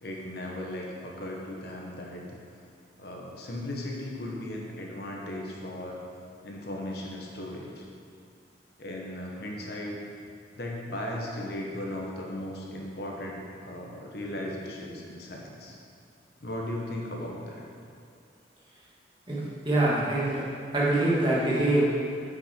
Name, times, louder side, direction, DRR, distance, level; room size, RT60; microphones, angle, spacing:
voice 1, 0.0-2.4 3.0-6.0 6.4-7.9 8.8-9.9 10.6-15.8 16.4-17.6, left 1 dB, 55° left, -1 dB, 1.0 m, -37 dB
voice 2, 19.3-20.4 20.7-21.8, right 1 dB, 25° right, -8 dB, 1.8 m, -24 dB
7.7 x 6.3 x 4.4 m, 2.3 s
head